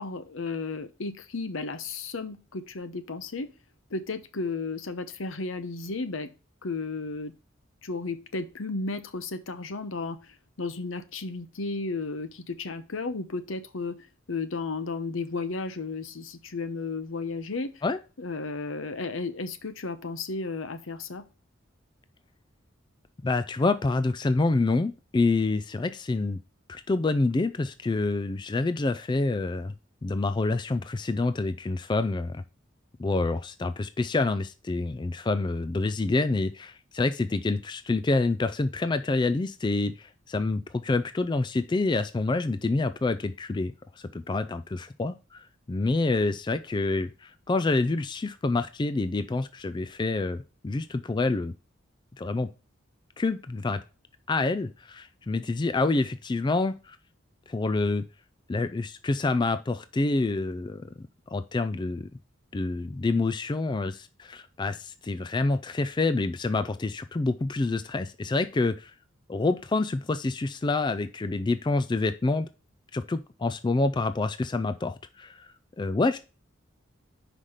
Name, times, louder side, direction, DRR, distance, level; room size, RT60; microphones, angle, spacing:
voice 1, 0.0-3.5 3.9-6.3 6.6-7.3 7.8-14.0 14.3-17.8 18.2-21.2, left 3 dB, 80° left, 0.9 m, -33 dB
voice 2, 23.2-26.4 26.7-29.7 30.0-32.4 33.0-51.5 52.2-52.5 53.2-53.8 54.3-57.0 57.5-58.0 58.5-60.9 61.3-62.1 62.5-68.9 69.3-72.5 72.9-76.2, left 3 dB, 20° left, 0.3 m, -27 dB
5.7 x 5.0 x 6.4 m
head